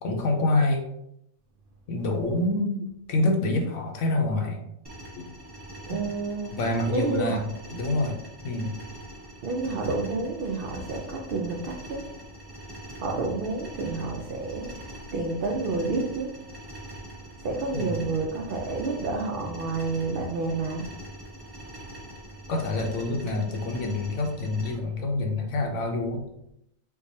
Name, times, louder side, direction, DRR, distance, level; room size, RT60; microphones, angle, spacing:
voice 1, 0.0-0.8 1.9-4.6 5.2-5.3 5.9-6.0 6.5-8.7 17.7-18.0 22.5-26.3, left 2 dB, 65° left, 3 dB, 0.9 m, -27 dB
sound 1, 4.8-24.7, right 1 dB, 20° right, 0.9 m, -43 dB
voice 2, 5.9-6.5 6.9-7.4 9.4-12.1 13.0-16.3 17.4-20.9, right 3 dB, 75° right, -1 dB, 0.5 m, -29 dB
4.6 x 2.2 x 2.6 m, 0.79 s
omnidirectional pair, 1.4 m